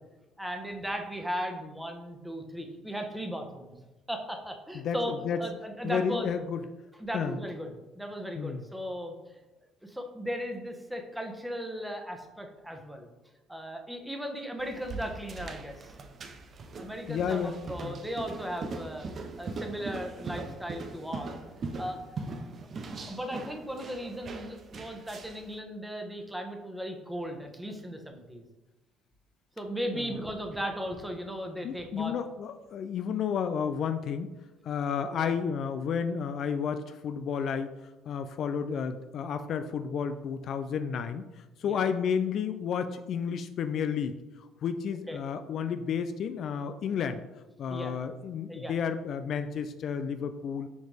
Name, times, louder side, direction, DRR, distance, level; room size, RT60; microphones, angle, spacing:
voice 1, 0.4-3.7 4.1-6.3 7.0-9.1 9.8-13.1 13.5-15.9 16.8-19.1 19.4-21.4 21.8-22.0 23.1-28.4 29.6-32.1 35.1-35.3 41.6-41.8 45.1-45.2 47.7-47.9 48.5-48.7, equal, 5° right, 4 dB, 1.2 m, -37 dB
voice 2, 4.7-5.4 5.8-6.6 7.1-7.4 8.4-8.6 17.1-17.5 17.8-17.9 29.9-30.2 31.6-34.3 34.6-37.7 38.1-44.2 44.6-47.2 47.6-50.7, left 7 dB, 55° left, 9 dB, 0.4 m, -31 dB
sound 1, 14.6-25.5, right 3 dB, 45° right, 0.7 m, -41 dB
6.3 x 4.9 x 3.4 m, 1.1 s
hypercardioid pair, 55°, 0 cm